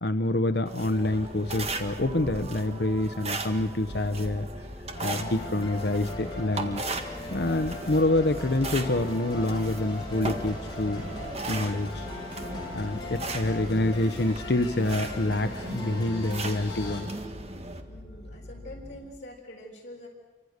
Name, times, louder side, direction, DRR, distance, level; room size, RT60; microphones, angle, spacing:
voice 1, 0.0-4.5 5.0-6.8 7.3-11.0 11.5-12.1 12.7-17.1, left 2 dB, 65° left, 9 dB, 0.9 m, -27 dB
sound 1, 0.7-17.8, right 2 dB, 35° right, 1.7 m, -37 dB
sound 2, 1.4-19.0, left 1 dB, 10° left, 7.3 m, -45 dB
sound 3, 4.9-17.0, left 2 dB, 25° left, 6.4 m, -40 dB
voice 2, 17.9-20.1, left 1 dB, 40° left, -3 dB, 5.7 m, -45 dB
27.5 x 24.5 x 6.6 m, 1.2 s
head